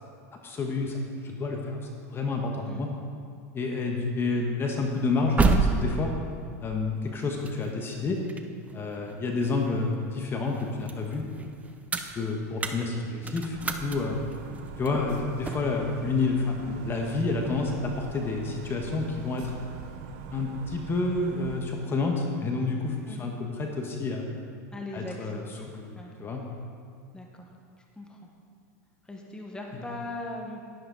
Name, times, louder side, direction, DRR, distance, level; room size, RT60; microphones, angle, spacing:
voice 1, 0.4-1.8 2.1-2.9 3.5-6.1 6.6-8.2 8.7-11.5 12.1-14.2 14.8-19.5 20.3-24.3 24.9-25.9 26.2-26.4 29.7-29.8, left 3 dB, 25° left, 1 dB, 1.3 m, -29 dB
sound 1, 4.9-10.0 10.4-15.8, right 4 dB, 15° right, 0.8 m, -31 dB
sound 2, 13.5-21.6, right 5 dB, 65° right, 1.0 m, -42 dB
voice 2, 24.7-25.7 25.9-26.1 27.1-27.5 28.0-28.3 29.1-30.6, left 1 dB, 10° left, 0 dB, 1.4 m, -39 dB
11.0 x 11.0 x 4.0 m, 2.2 s
supercardioid pair, 110°, 9 cm